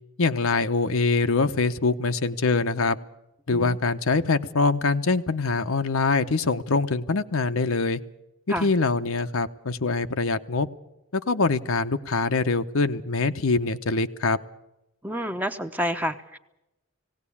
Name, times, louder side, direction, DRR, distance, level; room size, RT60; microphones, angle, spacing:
voice 1, 0.2-3.0 3.5-8.0 8.6-10.7 11.1-14.4, left 3 dB, 70° left, 9 dB, 0.8 m, -24 dB
voice 2, 15.0-16.4, equal, 5° right, 8 dB, 0.8 m, -29 dB
18.0 x 18.0 x 8.5 m, 0.90 s
head